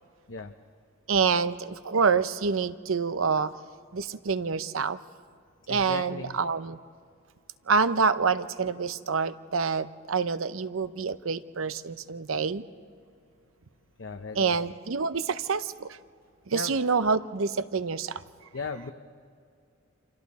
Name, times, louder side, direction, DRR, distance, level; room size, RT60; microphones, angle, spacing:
voice 1, 1.1-3.5 3.9-5.0 5.7-6.8 7.7-12.6 14.4-16.0 16.5-18.2, right 5 dB, 85° right, 13 dB, 0.7 m, -27 dB
voice 2, 5.7-6.4 14.0-14.5 16.5-16.8 18.5-18.9, left 4 dB, 65° left, 7 dB, 0.7 m, -36 dB
29.5 x 26.5 x 4.2 m, 2.2 s
head